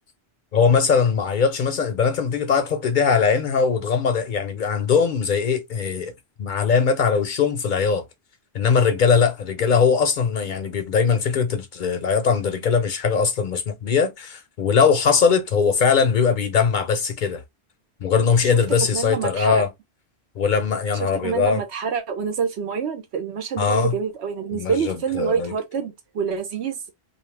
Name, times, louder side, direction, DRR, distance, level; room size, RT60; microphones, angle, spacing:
voice 1, 0.5-6.1 6.4-8.0 8.5-17.4 18.0-19.7 20.4-21.6 23.6-24.0 24.5-25.5, left 6 dB, 60° left, 0.6 m, -20 dB
voice 2, 18.9-19.6 21.0-26.8, right 6 dB, 85° right, 1.0 m, -26 dB
2.5 x 2.3 x 3.2 m
omnidirectional pair, 1.1 m